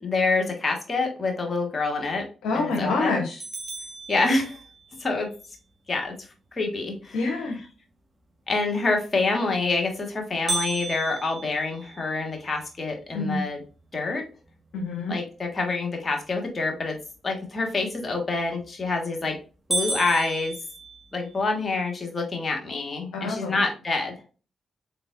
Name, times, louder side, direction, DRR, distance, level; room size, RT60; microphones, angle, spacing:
voice 1, 0.0-2.2 2.5-3.2 4.1-4.6 5.0-5.3 5.9-6.2 6.5-7.2 8.5-13.6 13.9-14.2 15.1-17.0 17.2-19.4 19.7-20.5 21.1-24.1, left 3 dB, 40° left, 2 dB, 1.5 m, -26 dB
voice 2, 2.4-3.4 7.1-7.6 13.1-13.4 14.7-15.1 23.1-23.6, left 3 dB, 80° left, 1 dB, 0.8 m, -27 dB
sound 1, 3.4-5.0 10.5-12.6 13.1-13.2 13.7-13.8 14.5-14.8 18.4-18.8 19.2-19.3 19.7-21.4, right 2 dB, 25° right, 1.5 m, -33 dB
3.8 x 3.7 x 2.5 m, 0.35 s
supercardioid pair, 45°, 0 cm